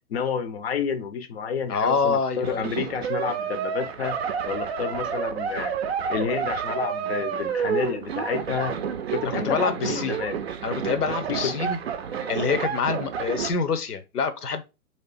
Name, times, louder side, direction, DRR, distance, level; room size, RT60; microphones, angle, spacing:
voice 1, 0.1-5.8 6.1-8.8 9.1-10.4 11.3-11.6, left 6 dB, 45° left, 0.6 m, -30 dB
voice 2, 1.7-2.6 9.4-10.2 10.6-11.8 12.3-14.6, left 5 dB, 75° left, 0.8 m, -26 dB
sound 1, 2.3-13.5, right 7 dB, 45° right, 0.5 m, -30 dB
3.2 x 2.9 x 3.2 m
figure-of-eight pair, 125°, 46 cm